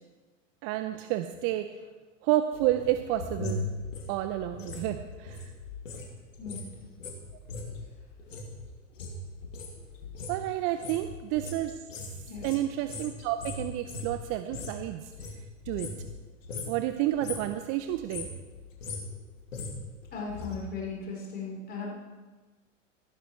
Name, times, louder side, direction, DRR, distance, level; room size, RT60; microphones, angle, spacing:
voice 1, 0.6-1.8 2.2-3.7 4.1-5.5 10.3-11.8 12.4-15.1 15.7-15.9 16.7-18.3, right 13 dB, 35° right, 9 dB, 0.6 m, -30 dB
sound 1, 2.5-6.1 6.3-14.8 15.1-16.2 16.4-16.8 17.1-17.6 17.9-20.6 20.9-21.0, left 3 dB, 75° left, 2.5 m, -39 dB
voice 2, 20.1-22.0, left 4 dB, 25° left, -2 dB, 3.9 m, -37 dB
15.0 x 13.0 x 3.2 m, 1.3 s
figure-of-eight pair, 95°, 39 cm